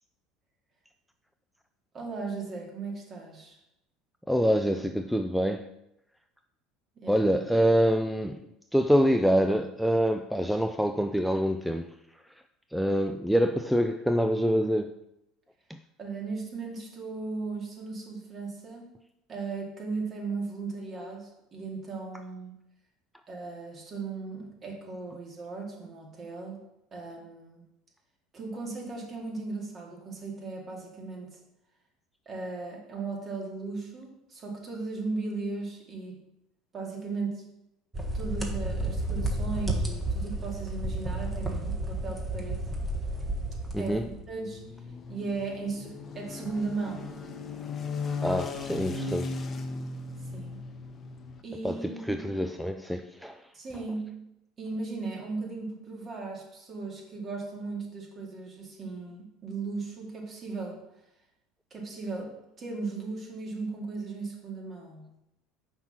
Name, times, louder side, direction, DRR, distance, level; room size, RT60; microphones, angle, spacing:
voice 1, 1.9-3.6 7.0-7.2 16.0-18.9 19.3-22.5 23.3-26.6 26.9-27.6 28.3-31.4 32.3-36.2 36.7-37.4 38.1-42.6 43.8-44.0 44.3-44.6 45.1-47.1 50.3-50.6 51.4-52.3 53.5-54.2 54.6-60.8 61.7-65.2, right 3 dB, 40° right, -1 dB, 2.3 m, -37 dB
voice 2, 4.3-5.7 7.1-8.4 8.7-11.9 12.7-14.9 43.7-44.1 48.2-49.3 51.6-51.8 52.1-53.4, equal, ahead, 6 dB, 0.4 m, -25 dB
sound 1, 37.9-44.3, right 1 dB, 20° right, 1.4 m, -31 dB
sound 2, 44.1-51.4, left 4 dB, 35° left, 0.8 m, -37 dB
5.7 x 4.3 x 5.9 m, 0.85 s
hypercardioid pair, 75°, 0 cm